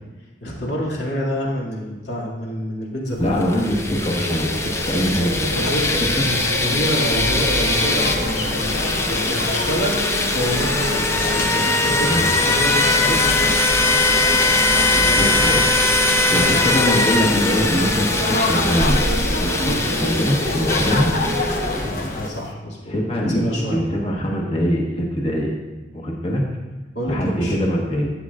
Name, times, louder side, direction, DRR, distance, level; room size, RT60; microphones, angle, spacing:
voice 1, 0.4-3.5 3.8-4.0 5.5-13.6 15.1-15.7 16.3-17.2 19.6-19.8 21.8-23.8 26.9-27.6, equal, 75° left, -4 dB, 2.3 m, -27 dB
Wind, 3.1-22.1, right 1 dB, 65° right, 0.9 m, -29 dB
voice 2, 3.2-5.7 11.9-12.2 14.9-15.6 16.3-21.1 22.9-25.5 25.9-26.4 27.1-28.1, equal, 30° left, -1 dB, 1.2 m, -23 dB
sound 1, 3.4-22.1, left 3 dB, 15° left, 0.5 m, -21 dB
sound 2, 7.7-22.3, left 2 dB, 45° left, 0.9 m, -28 dB
13.0 x 7.6 x 2.4 m, 1.2 s
head